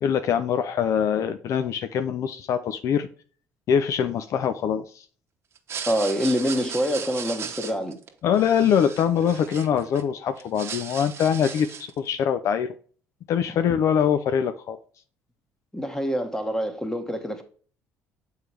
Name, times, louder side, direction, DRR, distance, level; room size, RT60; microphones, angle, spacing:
voice 1, 0.0-3.1 3.7-5.0 8.2-12.7 13.3-14.8, left 8 dB, 60° left, 0.6 m, -23 dB
sound 1, 5.6-10.0 10.4-12.0, right 7 dB, 50° right, 1.1 m, -37 dB
voice 2, 5.9-8.0 15.7-17.4, equal, 10° left, 1.5 m, -26 dB
6.8 x 4.7 x 3.2 m
supercardioid pair, 90°, 6 cm